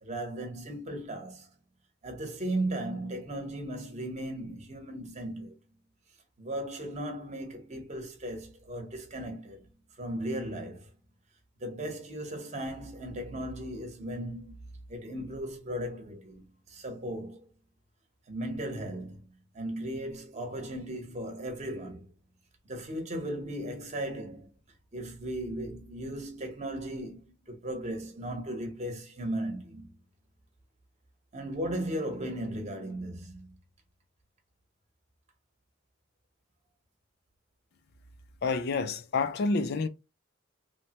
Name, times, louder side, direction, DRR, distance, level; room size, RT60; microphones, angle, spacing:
voice 1, 0.0-1.5 2.0-5.6 6.4-9.6 10.0-10.9 11.6-14.6 14.9-17.5 18.3-19.2 19.5-22.1 22.7-24.5 24.9-29.9 31.3-33.6, right 1 dB, 35° right, 0.8 m, -36 dB
voice 2, 38.4-39.9, left 4 dB, 50° left, 0.4 m, -28 dB
3.1 x 2.1 x 2.8 m
head